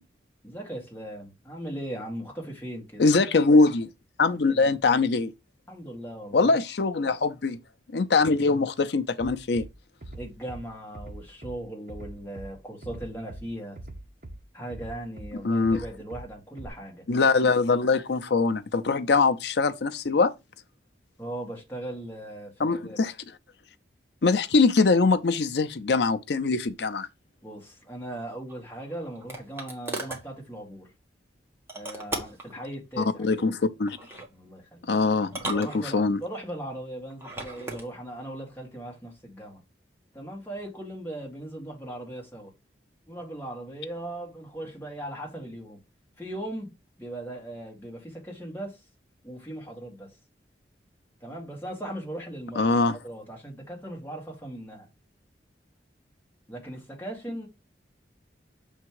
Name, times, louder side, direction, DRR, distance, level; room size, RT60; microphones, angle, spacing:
voice 1, 0.4-3.0 4.3-4.7 5.7-6.5 10.1-13.8 14.5-17.1 21.2-23.0 27.4-30.9 31.7-33.4 34.3-35.0 35.5-39.6 40.1-42.5 43.1-45.8 46.2-48.8 49.2-50.2 51.2-52.8 53.0-54.9 56.5-57.5, right 1 dB, 10° left, 1.9 m, -38 dB
voice 2, 3.0-3.9 4.2-5.3 6.3-7.6 7.9-9.7 15.4-15.8 17.1-20.3 22.6-23.1 24.2-27.1 33.0-34.0 34.9-36.2 52.6-53.0, left 3 dB, 65° left, 0.6 m, -23 dB
Bass drum, 9.2-9.7 10.0-10.6 10.9-11.6 11.9-12.5 12.8-13.4 13.8-14.4 14.7-15.3 15.6-16.2 16.6-16.7, right 1 dB, 45° right, 1.0 m, -41 dB
sound 1, 28.5-30.3 31.7-32.5 33.9-34.3 35.2-36.3 37.1-37.9, right 2 dB, 15° right, 1.3 m, -37 dB
6.8 x 3.6 x 4.6 m
head